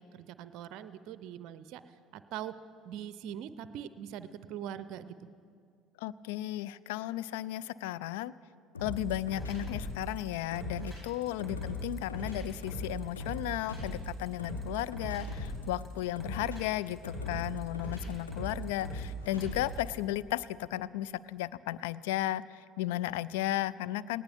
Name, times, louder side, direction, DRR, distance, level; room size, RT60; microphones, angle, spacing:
voice 1, 0.0-2.5 2.8-5.1 11.6-11.7, right 10 dB, 60° right, 13 dB, 0.5 m, -42 dB
voice 2, 6.0-8.3 8.8-24.2, left 14 dB, 75° left, 18 dB, 0.3 m, -34 dB
sound 1, 8.7-19.9, left 1 dB, 90° left, 4.6 m, -39 dB
18.5 x 18.5 x 3.5 m, 2.3 s
hypercardioid pair, 60°, 0 cm